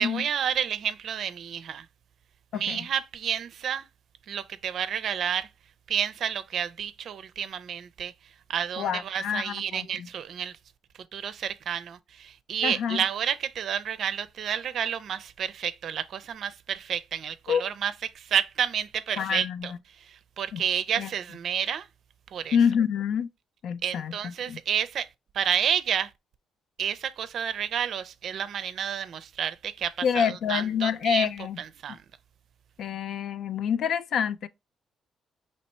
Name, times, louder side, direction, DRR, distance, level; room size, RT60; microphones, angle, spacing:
voice 1, 0.0-1.9 2.5-3.9 4.3-5.5 5.9-8.1 8.5-10.6 11.1-21.9 22.3-22.6 23.8-25.1 25.3-26.1 26.8-31.3 31.6-32.0, right 8 dB, 65° right, 0.4 m, -30 dB
voice 2, 2.5-2.8 8.8-10.1 12.6-13.0 17.5-17.7 19.2-19.7 20.5-20.6 21.0-21.1 22.5-23.3 23.6-24.1 24.5-24.6 30.0-31.6 32.8-34.5, left 7 dB, 70° left, 0.3 m, -27 dB
3.0 x 3.0 x 4.3 m
cardioid pair, 90°, 0 cm